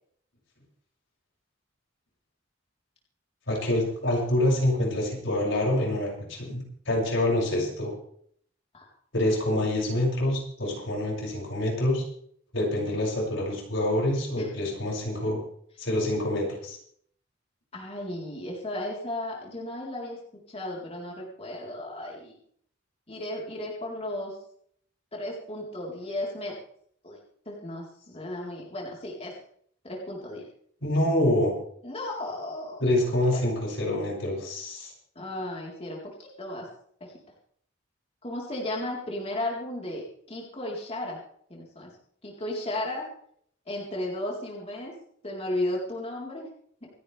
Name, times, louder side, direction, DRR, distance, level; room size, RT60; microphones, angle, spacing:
voice 1, 3.5-7.9 9.1-12.0 12.5-15.4 15.8-16.8 30.8-31.5 32.8-34.9, left 1 dB, 80° left, -2 dB, 6.7 m, -26 dB
voice 2, 17.7-20.2 20.5-22.4 23.1-24.4 25.1-26.6 27.0-27.2 27.5-29.4 29.8-30.5 31.8-32.8 33.3-33.4 35.2-36.7 37.0-37.2 38.2-41.2 41.5-41.9 42.2-43.1 43.7-44.9 45.2-46.5 46.8-46.9, left 1 dB, 35° left, -3 dB, 4.0 m, -34 dB
28.0 x 10.0 x 3.4 m, 0.63 s
head